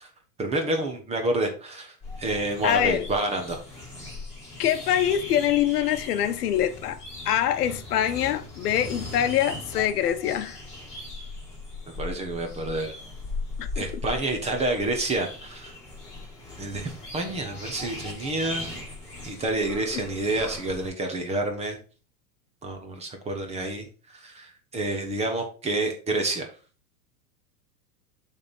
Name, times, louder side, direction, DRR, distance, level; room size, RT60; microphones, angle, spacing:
voice 1, 0.4-1.9 2.2-3.6 12.0-12.9 13.8-15.7 16.6-18.7 19.2-21.8 22.6-23.9 24.2-26.5, right 2 dB, 15° right, 1.0 m, -28 dB
sound 1, 2.0-20.9, left 2 dB, 15° left, 3.7 m, -39 dB
voice 2, 2.6-3.1 4.6-7.0 7.2-10.6 13.6-13.8 19.9-20.0, left 11 dB, 75° left, 0.9 m, -24 dB
6.7 x 3.6 x 5.3 m
supercardioid pair, 150°, 47 cm